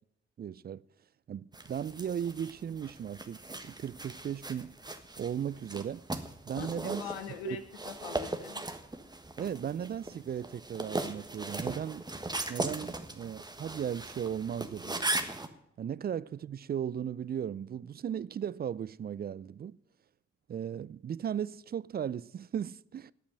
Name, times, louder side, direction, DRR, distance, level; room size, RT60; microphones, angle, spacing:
voice 1, 0.4-0.8 1.3-4.8 5.2-6.0 6.5-7.0 7.4-7.6 9.4-12.0 12.5-15.0 15.8-19.8 20.5-23.1, right 9 dB, 35° right, 0.5 m, -36 dB
sound 1, 1.5-15.5, right 2 dB, 15° right, 1.5 m, -39 dB
voice 2, 6.6-8.6, left 8 dB, 90° left, 0.9 m, -43 dB
10.0 x 8.5 x 9.9 m
hypercardioid pair, 45°, 29 cm